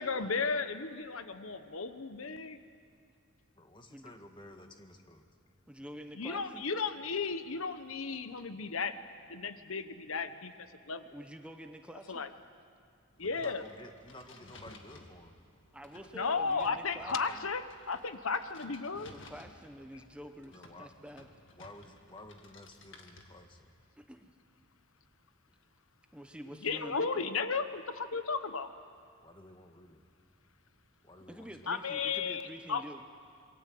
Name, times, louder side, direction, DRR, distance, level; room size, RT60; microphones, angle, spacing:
voice 1, 0.0-2.6 6.2-9.0 9.3-10.5 10.9-11.0 12.1-12.3 13.2-13.6 16.1-19.1 26.6-28.7 31.7-32.4 32.7-32.8, left 4 dB, 80° left, 11 dB, 1.1 m, -34 dB
voice 2, 3.6-5.2 13.2-15.4 20.5-20.9 21.5-23.7 29.2-30.0 31.0-32.0, left 1 dB, 20° left, 5 dB, 1.6 m, -53 dB
voice 3, 5.7-6.6 11.1-12.3 15.7-17.5 19.1-21.3 21.9-22.0 24.0-24.3 26.1-27.3 31.3-33.0, equal, 5° right, 6 dB, 0.9 m, -48 dB
sound 1, 13.1-23.7, left 2 dB, 60° left, 2.1 m, -57 dB
27.0 x 23.0 x 7.8 m, 2.4 s
head